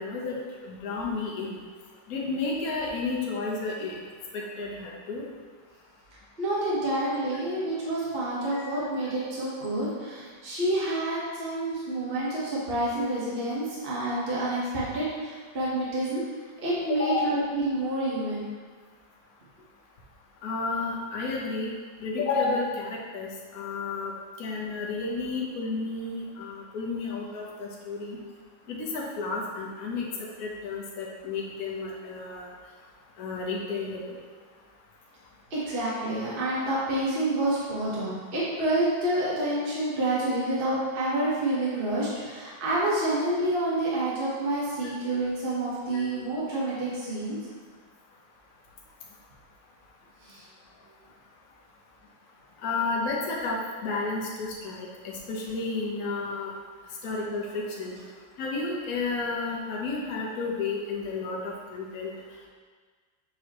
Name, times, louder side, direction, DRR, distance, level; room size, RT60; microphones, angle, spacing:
voice 1, 0.0-1.6 2.1-3.9 4.3-5.2 8.5-8.6 17.0-17.3 20.4-21.7 22.0-24.1 24.4-28.2 28.7-30.0 30.4-32.5 33.2-34.2 52.6-56.5 57.0-57.9 58.4-62.1, left 3 dB, 55° left, -3 dB, 1.3 m, -31 dB
voice 2, 6.4-16.2 16.6-18.5 35.5-47.4 50.2-50.4, right 1 dB, 30° right, -8 dB, 1.4 m, -28 dB
6.9 x 4.9 x 3.0 m, 1.5 s
omnidirectional pair, 2.0 m